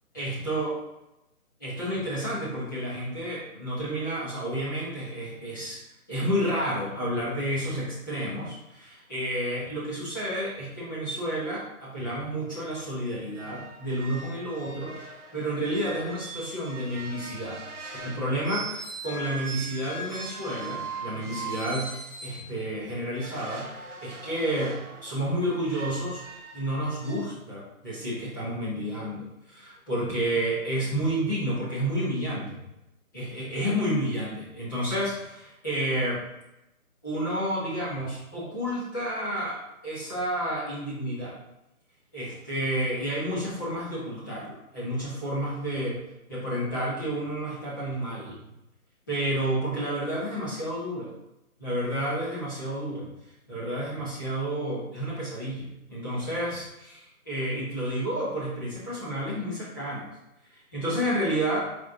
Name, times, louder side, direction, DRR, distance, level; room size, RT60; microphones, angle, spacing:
voice 1, 0.1-0.7 1.6-5.8 6.1-14.9 15.3-17.6 18.0-21.9 22.2-26.2 26.5-32.6 33.1-36.2 37.0-39.6 39.8-41.3 42.1-46.0 46.3-48.4 49.1-51.1 51.6-53.1 53.5-60.1 60.7-61.7, right 1 dB, 15° left, -10 dB, 1.3 m, -30 dB
sound 1, 12.5-12.6 12.9-13.0 13.3-22.5 23.1-27.2, right 3 dB, 55° right, 1.1 m, -40 dB
7.1 x 4.7 x 3.0 m, 0.90 s
figure-of-eight pair, 170°, 44 cm